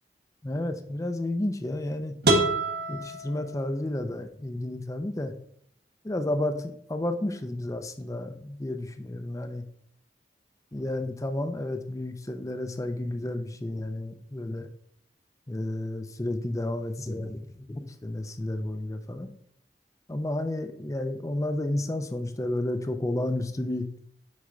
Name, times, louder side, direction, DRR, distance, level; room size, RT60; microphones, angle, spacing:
voice 1, 0.4-2.1 2.9-5.3 6.0-9.6 10.7-14.7 15.5-17.4 17.7-19.3 20.1-23.8, left 1 dB, 20° left, 8 dB, 0.5 m, -31 dB
sound 1, 2.2-4.2, right 2 dB, 65° right, 1.1 m, -27 dB
6.3 x 4.6 x 3.9 m, 0.66 s
head